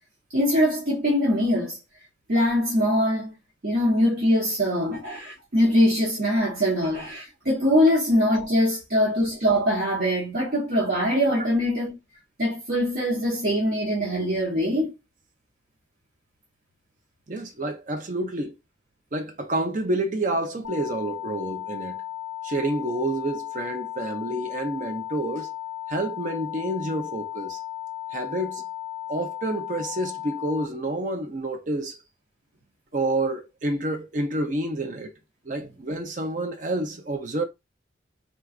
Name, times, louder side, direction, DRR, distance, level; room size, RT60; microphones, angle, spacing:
voice 1, 0.3-1.8 2.3-3.3 3.6-12.0 12.4-15.0, equal, 55° right, 1.1 m, -22 dB
voice 2, 17.3-18.5 19.1-22.0 22.4-25.5 25.9-27.6 28.1-28.6 29.1-32.0 32.9-35.1 35.5-37.4, right 1 dB, 40° right, 0.5 m, -28 dB
sound 1, 20.6-30.7, left 9 dB, 65° left, 0.4 m, -35 dB
3.8 x 2.3 x 2.4 m
head